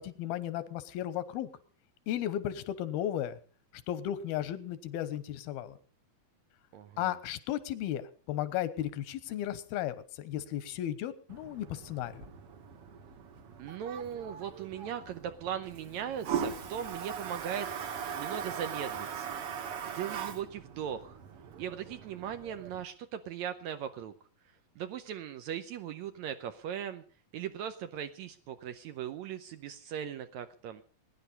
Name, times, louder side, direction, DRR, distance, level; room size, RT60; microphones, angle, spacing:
voice 1, 0.0-1.5 2.1-3.4 3.9-5.8 7.0-12.2, left 12 dB, 85° left, 14 dB, 2.9 m, -35 dB
voice 2, 6.7-7.2 13.6-19.3 19.9-21.2 21.6-24.1 24.8-27.0 27.3-30.8, right 9 dB, 85° right, 9 dB, 1.6 m, -39 dB
Toilet flush, 11.3-22.8, right 7 dB, 60° right, 1.6 m, -40 dB
20.5 x 10.5 x 5.4 m, 0.43 s
omnidirectional pair, 4.3 m